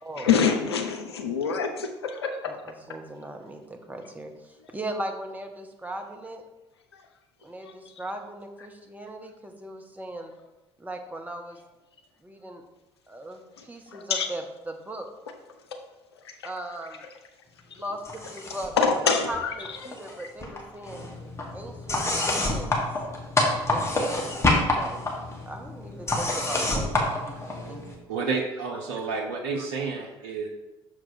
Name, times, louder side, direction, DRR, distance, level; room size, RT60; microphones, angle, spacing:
voice 1, 0.2-2.5 13.6-14.3 16.2-16.5 17.7-17.8 18.8-19.9 20.2-20.3 22.2-22.4, left 6 dB, 80° left, 5 dB, 0.6 m, -26 dB
voice 2, 2.5-6.4 7.4-10.3 10.8-11.6 12.2-12.6 13.1-15.1 16.4-17.0 17.7-18.8 19.0-21.0 21.5-22.9 23.7-25.0 25.5-27.4 27.7-27.8 29.6-29.7, right 1 dB, 10° right, 4 dB, 1.0 m, -38 dB
sound 1, 18.0-18.8 19.1-20.1 20.4-27.9, left 2 dB, 20° left, 1.6 m, -27 dB
voice 3, 28.1-30.5, right 4 dB, 65° right, 1 dB, 0.8 m, -30 dB
6.5 x 4.4 x 4.1 m, 1.0 s
figure-of-eight pair, 55°, 13 cm